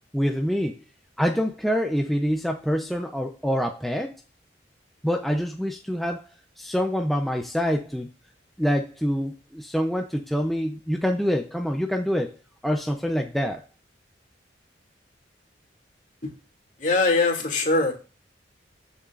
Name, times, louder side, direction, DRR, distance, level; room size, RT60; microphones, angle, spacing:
voice 1, 0.1-0.8 1.2-4.1 5.0-6.2 6.6-8.1 8.6-12.3 12.6-13.6, equal, ahead, 3 dB, 0.6 m, -26 dB
voice 2, 16.8-17.9, left 3 dB, 40° left, 2 dB, 2.6 m, -22 dB
14.5 x 7.1 x 2.6 m, 0.33 s
head